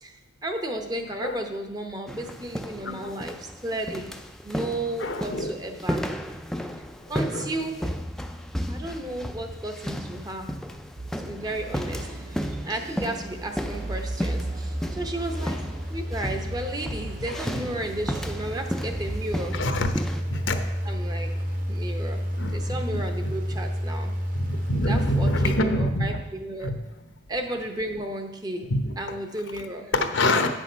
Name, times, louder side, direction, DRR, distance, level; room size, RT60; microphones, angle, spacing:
voice 1, 0.0-4.1 4.4-6.1 7.1-7.9 8.7-10.6 11.3-19.6 20.9-21.3 21.7-22.2 22.5-24.1 24.8-26.7 27.3-28.7 29.0-29.9, right 1 dB, 20° right, 5 dB, 0.7 m, -33 dB
sound 1, 2.1-20.2, equal, ahead, 0.3 m, -34 dB
voice 2, 2.8-3.1 5.0-5.5 7.3-7.5 17.3-17.4 19.5-19.9 20.3-20.6 22.4-22.6 22.9-23.3 24.4-26.2 26.6-26.7 28.7-28.9 29.9-30.5, left 1 dB, 80° left, 7 dB, 0.9 m, -25 dB
sound 2, 11.0-19.9, right 2 dB, 70° right, 0.8 m, -40 dB
sound 3, 11.4-25.4, equal, 45° right, 1.1 m, -32 dB
8.7 x 6.3 x 5.6 m, 1.0 s
head